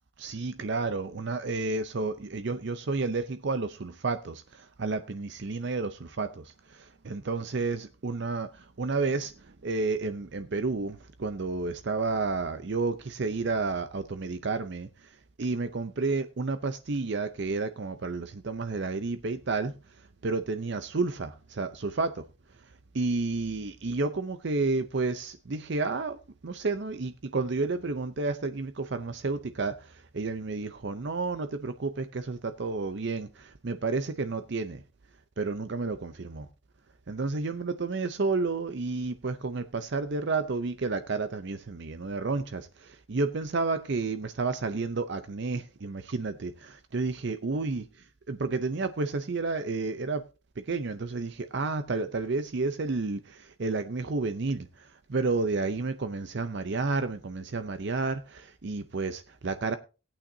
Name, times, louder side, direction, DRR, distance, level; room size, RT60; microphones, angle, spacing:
voice 1, 0.2-9.3 9.6-14.9 15.4-19.7 20.2-22.2 22.9-26.2 26.4-29.8 30.1-34.8 35.4-36.5 37.1-47.8 48.3-50.2 50.7-54.7 55.1-59.8, right 3 dB, 55° right, 0.6 m, -31 dB
18.0 x 8.7 x 2.7 m
head